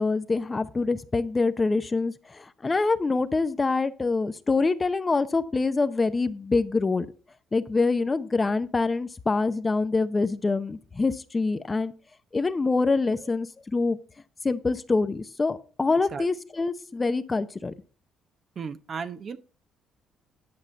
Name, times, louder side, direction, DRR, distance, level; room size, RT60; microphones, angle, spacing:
voice 1, 0.0-7.1 7.5-11.9 12.3-14.0 14.4-17.7, left 3 dB, 25° left, 0.8 m, -25 dB
voice 2, 18.6-19.4, right 5 dB, 50° right, 0.9 m, -34 dB
10.5 x 5.6 x 4.4 m
supercardioid pair, 75°, 0 cm